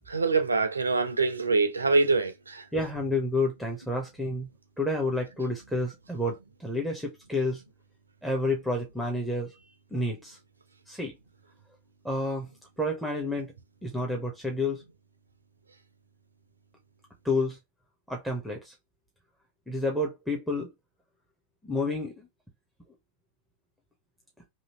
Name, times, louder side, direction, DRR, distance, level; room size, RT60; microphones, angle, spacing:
voice 1, 0.1-2.6, right 3 dB, 75° right, 0.6 m, -24 dB
voice 2, 2.7-4.5 4.8-7.6 8.2-9.6 9.9-10.4 10.9-11.2 12.0-12.5 12.8-13.5 13.8-14.8 17.2-17.6 18.1-18.7 19.7-20.7 21.6-22.3, left 2 dB, ahead, 0.8 m, -30 dB
3.0 x 2.7 x 2.9 m
figure-of-eight pair, 90°, 0 cm